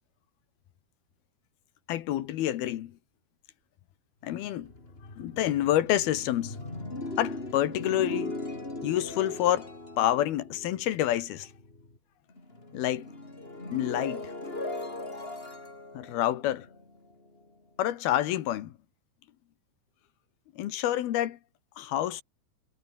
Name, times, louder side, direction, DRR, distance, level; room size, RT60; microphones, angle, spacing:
voice 1, 1.9-3.0 4.2-4.7 5.2-6.6 7.2-8.3 8.8-9.7 10.0-11.5 12.7-13.1 13.7-14.3 15.9-16.7 17.8-18.7 20.6-21.4 21.8-22.2, left 13 dB, 70° left, 3.0 m, -28 dB
sound 1, 4.2-12.0 12.3-17.4, left 2 dB, 15° left, 3.9 m, -39 dB
omnidirectional pair, 5.0 m